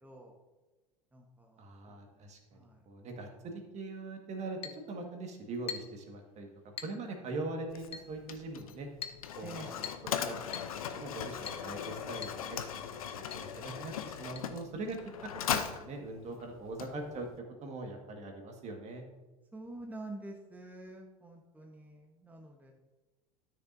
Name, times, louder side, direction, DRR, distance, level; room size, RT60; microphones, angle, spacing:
voice 1, 0.0-0.3 1.1-2.0 2.5-2.8 9.4-9.9 19.5-22.7, right 2 dB, 10° right, 0 dB, 1.1 m, -47 dB
voice 2, 1.6-6.5 6.8-8.9 9.4-9.7 10.0-10.4 10.9-15.0 15.5-19.0, right 2 dB, 40° right, 3 dB, 1.7 m, -42 dB
Chink clink, 4.6-4.8 5.7-6.0 6.8-7.0 7.9-8.1 9.0-9.2 9.8-10.1 10.5-10.7 11.5-11.7 12.2-12.4 12.7-12.8 13.3-13.5 14.4-14.5, left 8 dB, 35° left, 0.8 m, -42 dB
Mechanisms, 7.7-17.4, left 8 dB, 75° left, 0.7 m, -39 dB
12.5 x 6.4 x 2.7 m, 1.2 s
figure-of-eight pair, 75°, 18 cm